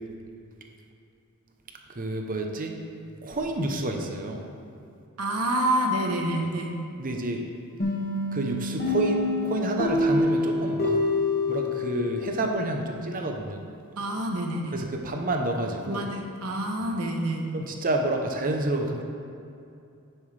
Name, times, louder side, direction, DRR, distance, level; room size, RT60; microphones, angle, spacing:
voice 1, 1.9-2.7 3.2-4.4 7.0-7.4 8.3-11.0 11.5-13.6 14.7-16.0 17.5-19.0, right 2 dB, 40° right, 3 dB, 0.8 m, -29 dB
voice 2, 5.2-6.7 14.0-14.8 15.8-17.4, right 1 dB, 85° right, 1 dB, 1.1 m, -27 dB
sound 1, 7.8-12.5, left 2 dB, 45° left, 1.8 m, -26 dB
9.9 x 7.3 x 3.4 m, 2.6 s
head